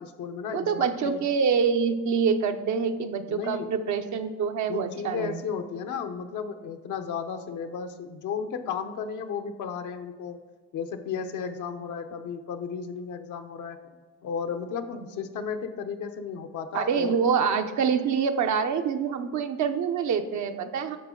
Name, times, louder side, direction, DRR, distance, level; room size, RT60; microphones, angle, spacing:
voice 1, 0.0-1.2 3.3-3.7 4.7-10.4 10.7-14.0 14.2-17.2, left 6 dB, 80° left, 7 dB, 0.9 m, -34 dB
voice 2, 0.5-5.4 14.9-15.0 16.7-21.0, right 6 dB, 70° right, 6 dB, 0.8 m, -26 dB
10.0 x 6.5 x 3.8 m, 1.5 s
cardioid pair, 90°, 30 cm